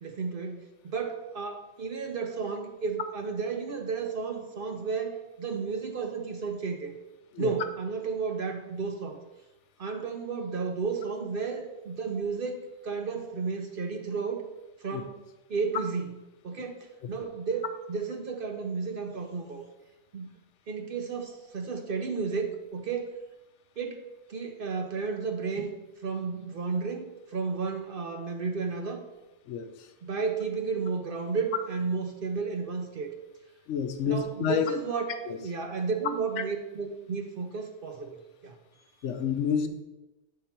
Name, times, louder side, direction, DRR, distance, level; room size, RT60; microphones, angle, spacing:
voice 1, 0.0-6.9 7.4-9.2 9.8-14.4 14.8-15.2 15.5-16.2 16.4-19.6 20.1-20.3 20.7-23.1 23.8-24.0 24.3-25.7 26.0-29.0 30.0-33.1 34.1-38.1 38.4-38.6, right 5 dB, 55° right, 4 dB, 0.8 m, -32 dB
voice 2, 33.7-34.6 35.3-35.4 39.0-39.7, left 7 dB, 85° left, 8 dB, 1.0 m, -28 dB
8.2 x 3.7 x 4.4 m, 1.0 s
omnidirectional pair, 1.2 m